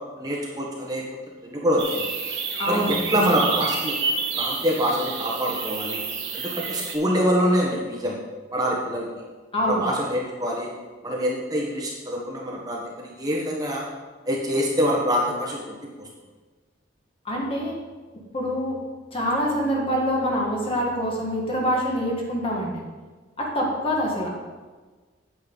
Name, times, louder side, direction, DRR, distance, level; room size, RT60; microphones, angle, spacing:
voice 1, 0.2-1.0 1.4-2.1 2.7-2.8 3.1-4.0 4.3-6.0 6.3-8.2 8.5-9.1 9.6-10.7 11.0-13.8 14.3-15.7, equal, 20° right, -2 dB, 1.3 m, -25 dB
sound 1, 1.8-7.0, right 5 dB, 70° right, 2.0 m, -29 dB
voice 2, 2.6-3.4 9.5-9.8 17.3-17.8 18.3-18.8 19.1-22.7 23.4-24.3, equal, 30° left, -2 dB, 1.9 m, -25 dB
9.0 x 8.9 x 4.1 m, 1.4 s
head